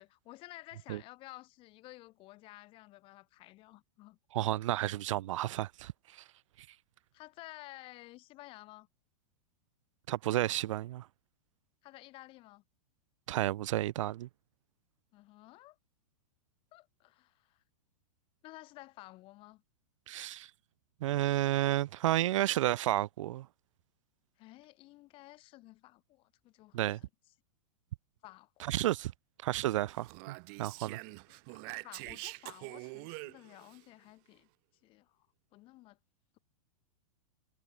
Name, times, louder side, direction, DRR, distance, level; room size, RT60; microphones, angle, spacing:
voice 1, 0.0-4.2 7.1-8.9 11.8-12.6 15.1-15.8 16.7-17.6 18.4-19.6 24.4-26.9 28.2-28.8 31.1-34.5 34.8-35.2 35.5-36.0, left 19 dB, 30° left, 4.5 m, -53 dB
voice 2, 4.3-6.2 10.1-11.1 13.3-14.3 20.1-20.5 21.0-23.5 26.7-27.0 28.6-29.1 29.4-31.0, right 14 dB, 60° right, 0.7 m, -31 dB
Speech, 29.9-33.8, right 39 dB, 35° right, 1.5 m, -45 dB
supercardioid pair, 160°, 18 cm